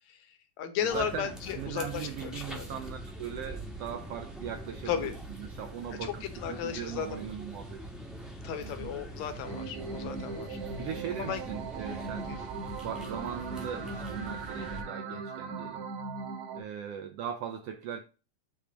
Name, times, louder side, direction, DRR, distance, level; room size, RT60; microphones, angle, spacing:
voice 1, 0.1-2.7 4.9-5.1 6.0-7.2 8.4-10.6 11.2-11.4 12.3-12.4, left 8 dB, 70° left, 2.1 m, -35 dB
voice 2, 0.8-7.8 8.6-8.9 10.8-12.3 12.8-15.8 16.6-18.0, right 8 dB, 85° right, 1.3 m, -39 dB
sound 1, 0.9-14.8, right 1 dB, ahead, 0.4 m, -43 dB
sound 2, 9.5-16.6, right 4 dB, 70° right, 2.4 m, -39 dB
8.4 x 3.3 x 5.1 m
omnidirectional pair, 3.5 m